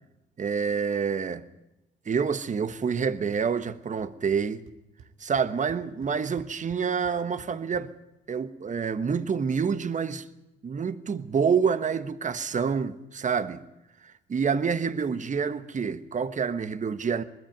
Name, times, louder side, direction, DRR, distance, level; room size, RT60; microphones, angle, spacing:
voice 1, 0.4-1.4 2.1-4.7 5.2-7.9 8.3-10.2 10.6-13.6 14.3-17.2, right 6 dB, 40° right, 1.3 m, -27 dB
sound 1, 2.7-3.1 3.3-3.7 4.0-4.1 4.3-7.8, right 6 dB, 90° right, 2.4 m, -52 dB
20.5 x 14.0 x 9.3 m
cardioid pair, 90°, 20 cm